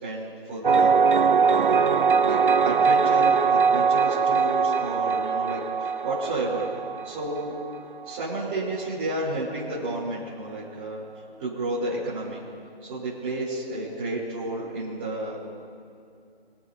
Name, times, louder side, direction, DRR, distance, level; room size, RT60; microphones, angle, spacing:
voice 1, 0.0-1.9 2.2-2.4 2.6-6.7 7.0-7.5 8.0-11.0 11.4-12.4 12.8-15.4, right 2 dB, 15° right, -11 dB, 3.2 m, -31 dB
sound 1, 0.6-8.2, right 5 dB, 55° right, 0.5 m, -22 dB
25.5 x 13.5 x 2.7 m, 2.4 s
figure-of-eight pair, 165°, 31 cm